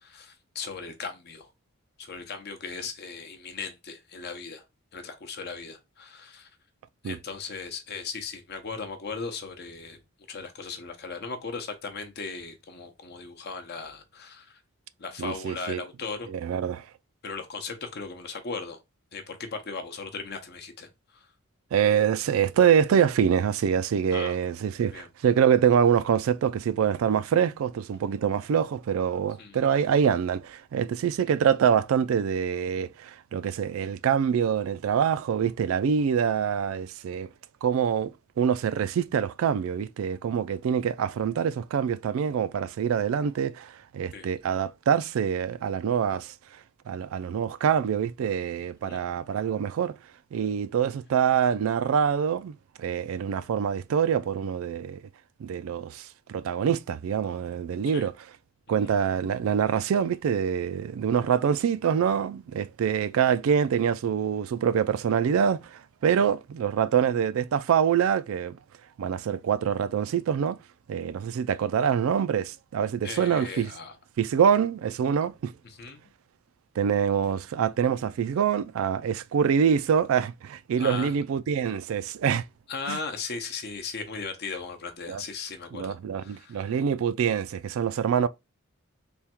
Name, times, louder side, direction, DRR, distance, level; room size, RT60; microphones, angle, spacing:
voice 1, 0.0-1.5 2.0-4.6 4.9-6.5 7.0-10.0 10.3-14.6 15.0-16.3 17.2-18.8 19.1-21.3 24.1-24.4 24.9-25.1 29.4-29.6 44.1-44.3 48.8-49.0 57.9-58.1 58.8-58.9 66.2-66.3 73.0-74.0 75.6-76.0 80.8-81.1 82.7-86.7, left 4 dB, 50° left, 0.7 m, -37 dB
voice 2, 15.2-15.8 16.3-16.8 21.7-37.3 37.6-46.3 46.9-50.0 50.3-55.0 55.4-58.1 58.7-68.6 69.0-70.6 70.9-73.7 74.2-75.5 76.8-82.5 82.9-83.0 85.1-85.2 85.7-88.3, right 7 dB, 75° right, 0.3 m, -25 dB
3.5 x 2.2 x 4.2 m
head